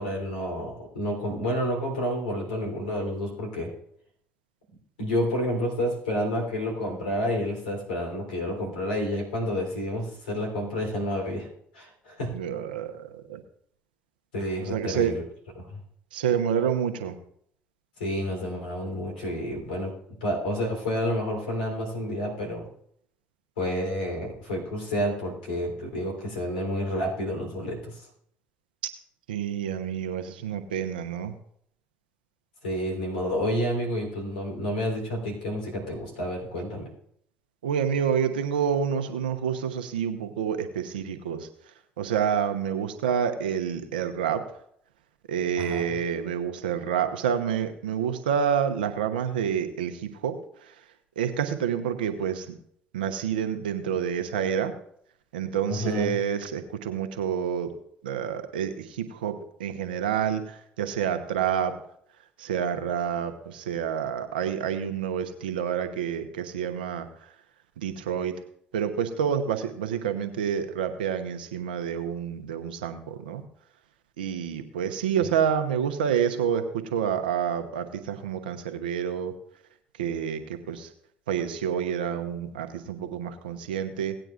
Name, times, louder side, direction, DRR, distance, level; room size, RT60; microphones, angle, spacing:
voice 1, 0.0-3.7 5.0-11.5 11.7-12.3 14.3-15.2 15.5-15.8 18.0-19.9 20.2-22.7 23.6-28.0 32.6-36.9 45.6-45.9 55.7-56.1, equal, 90° left, 1 dB, 3.5 m, -29 dB
voice 2, 12.3-13.4 14.6-15.1 16.1-17.2 29.3-31.3 37.6-41.5 42.0-44.4 45.3-50.4 51.2-52.5 52.9-54.7 55.3-57.7 58.0-61.7 62.4-67.1 67.8-68.3 68.7-73.4 74.2-76.6 76.9-79.3 80.0-80.4 80.7-80.9 81.3-84.1, right 8 dB, 90° right, 8 dB, 0.9 m, -28 dB
17.5 x 9.0 x 2.5 m, 0.67 s
hypercardioid pair, 60°, 5 cm